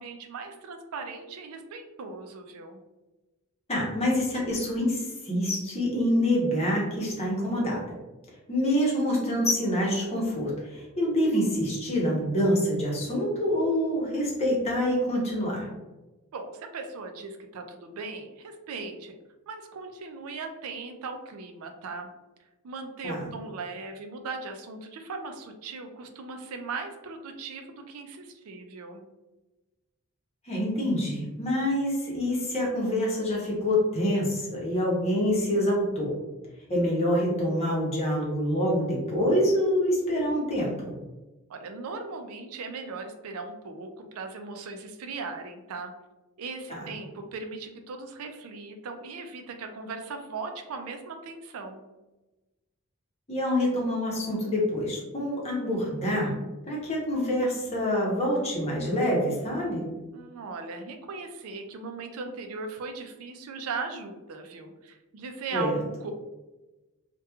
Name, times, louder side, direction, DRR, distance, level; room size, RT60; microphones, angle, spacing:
voice 1, 0.0-2.8 16.3-19.2 19.5-22.1 22.6-29.0 41.5-45.9 46.4-51.8 60.1-66.1, right 4 dB, 70° right, 5 dB, 0.4 m, -38 dB
voice 2, 3.7-7.8 8.5-15.7 23.0-23.3 30.5-36.2 36.7-40.9 46.7-46.8 53.3-56.3 56.7-59.9 65.5-65.7, equal, 30° left, -3 dB, 0.8 m, -26 dB
2.9 x 2.2 x 2.3 m, 1.1 s
head